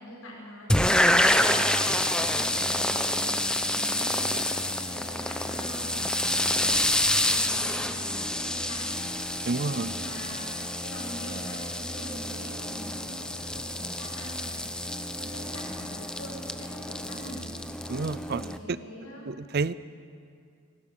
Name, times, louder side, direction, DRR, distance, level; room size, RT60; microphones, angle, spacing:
voice 1, 0.0-4.4 4.7-9.0 9.4-17.5 18.3-19.3, equal, 80° left, -5 dB, 5.8 m, -44 dB
sound 1, 0.7-18.6, left 1 dB, 5° left, 0.7 m, -28 dB
voice 2, 9.5-9.9 17.9-18.4 18.7-18.8 19.3-19.7, right 4 dB, 45° right, 17 dB, 0.5 m, -29 dB
28.5 x 12.0 x 8.6 m, 2.3 s
head